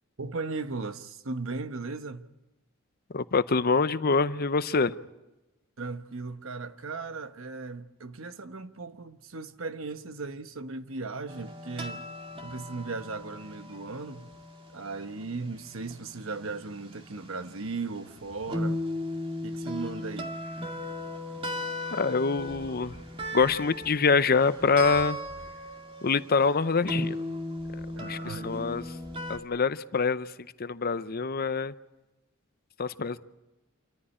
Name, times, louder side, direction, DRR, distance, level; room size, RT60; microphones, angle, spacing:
voice 1, 0.2-2.3 5.8-12.0 12.4-14.3 14.7-18.8 19.4-20.3 28.0-28.5, right 3 dB, 70° right, 1.1 m, -37 dB
voice 2, 3.1-5.0 21.9-23.1 23.3-25.2 26.0-27.2 27.7-29.0 29.3-31.7 32.8-33.2, left 4 dB, 45° left, 0.7 m, -26 dB
sound 1, 11.3-29.4, left 1 dB, 25° right, 2.3 m, -37 dB
27.5 x 14.5 x 10.0 m
head